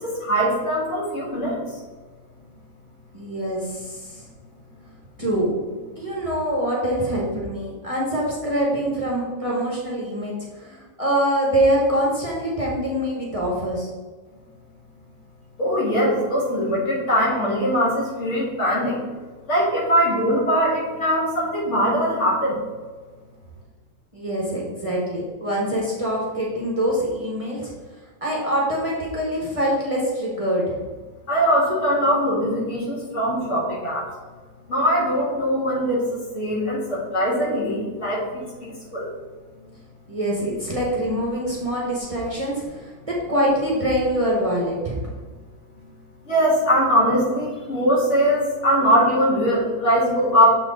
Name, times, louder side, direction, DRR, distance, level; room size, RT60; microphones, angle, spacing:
voice 1, 0.0-1.8 15.6-19.0 19.5-22.6 31.3-34.1 34.7-36.1 36.3-39.1 46.3-50.5, equal, 55° left, -6 dB, 2.4 m, -21 dB
voice 2, 3.1-4.2 5.2-5.5 6.0-13.9 24.1-27.7 28.2-30.8 40.1-45.0, equal, 25° right, -4 dB, 1.2 m, -24 dB
7.1 x 4.4 x 3.9 m, 1.4 s
omnidirectional pair, 1.5 m